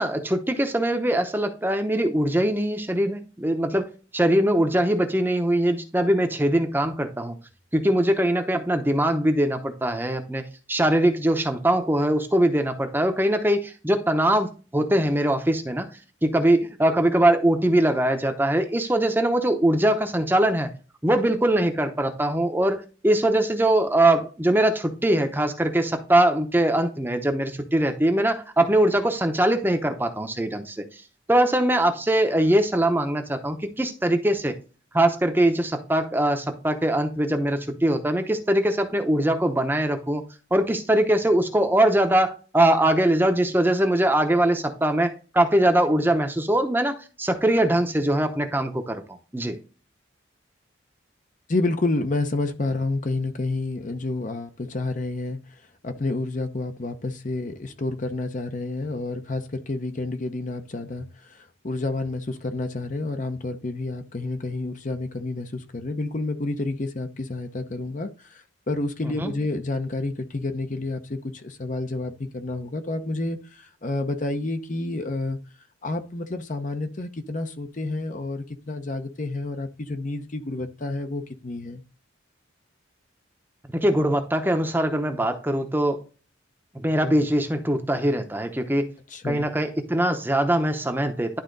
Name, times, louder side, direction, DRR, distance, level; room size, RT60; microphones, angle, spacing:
voice 1, 0.0-7.4 7.7-15.9 16.2-20.7 21.0-31.0 31.3-34.6 34.9-40.2 40.5-49.6 69.0-69.3 83.7-86.0 86.7-88.9 89.2-91.4, right 1 dB, 10° right, 0.8 m, -22 dB
voice 2, 51.5-55.4 55.8-75.4 75.8-81.8 89.1-89.5, left 2 dB, 40° left, 0.7 m, -29 dB
11.5 x 3.8 x 3.9 m
head